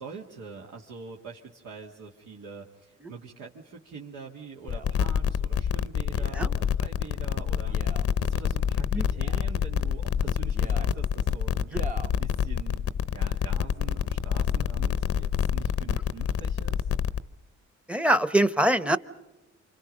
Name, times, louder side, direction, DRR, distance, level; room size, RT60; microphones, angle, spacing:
voice 1, 0.0-12.8 13.1-16.9, right 5 dB, 80° right, -2 dB, 2.1 m, -44 dB
Male speech man speaking, 4.6-4.9 6.1-6.5 7.6-8.1 9.0-9.5 10.5-10.9 11.7-12.1 12.8-12.9, right 4 dB, 25° right, 1.0 m, -42 dB
sound 1, 4.7-17.2, left 8 dB, 50° left, 0.7 m, -27 dB
voice 2, 17.9-19.0, right 1 dB, 5° right, 14 dB, 0.9 m, -23 dB
29.0 x 26.0 x 5.3 m, 1.0 s
cardioid pair, 90°, 30 cm